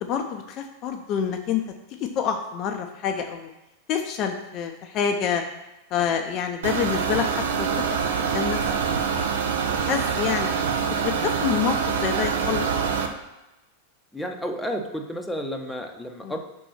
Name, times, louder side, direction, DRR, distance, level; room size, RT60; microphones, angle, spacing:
voice 1, 0.0-1.6 2.1-3.5 3.9-5.4 5.9-7.7 8.2-8.6 8.9-9.1 9.8-10.5 11.0-12.7 16.2-16.3, left 7 dB, 35° left, 5 dB, 0.6 m, -27 dB
sound 1, 6.6-13.1, right 6 dB, 60° right, 0.7 m, -25 dB
voice 2, 14.1-16.4, equal, 5° left, 3 dB, 0.8 m, -31 dB
5.4 x 4.2 x 5.8 m, 0.97 s
figure-of-eight pair, 90°, 0 cm